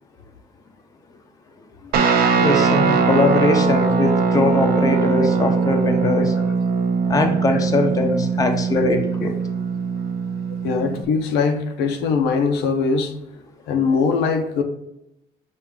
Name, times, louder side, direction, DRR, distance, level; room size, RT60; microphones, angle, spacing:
Guitar, 1.9-11.0, right 5 dB, 65° right, 0.6 m, -20 dB
voice 1, 2.3-6.3 7.1-9.3, left 2 dB, 20° left, 0.6 m, -21 dB
voice 2, 10.6-13.1 13.7-14.6, left 5 dB, 85° left, 0.6 m, -21 dB
5.8 x 2.5 x 3.6 m
cardioid pair, 110°, 17 cm